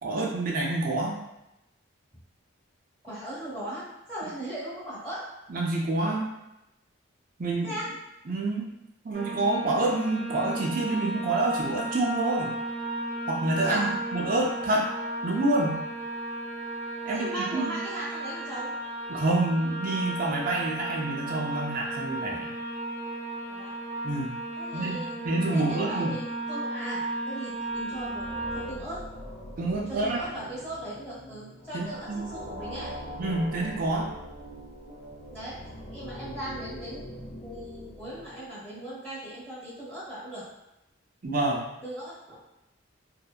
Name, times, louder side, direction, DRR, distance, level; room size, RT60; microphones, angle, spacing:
voice 1, 0.0-1.2 5.5-6.3 7.4-7.8 8.3-8.7 9.0-12.5 13.3-14.9 15.2-15.8 17.1-17.8 19.1-22.5 24.0-24.3 24.7-26.2 29.6-30.2 31.7-32.3 33.2-34.1 41.2-41.7, right 2 dB, 45° right, -2 dB, 0.4 m, -27 dB
voice 2, 3.0-5.3 7.6-7.9 13.6-13.9 17.1-18.7 23.5-23.7 24.6-29.0 29.9-32.9 35.3-35.6 35.9-40.5 41.8-42.4, right 1 dB, 10° left, -11 dB, 1.0 m, -38 dB
sound 1, 9.1-28.7, right 1 dB, 40° left, 0.8 m, -34 dB
sound 2, 27.6-38.8, equal, 60° left, 0.5 m, -42 dB
2.6 x 2.1 x 2.3 m, 0.90 s
head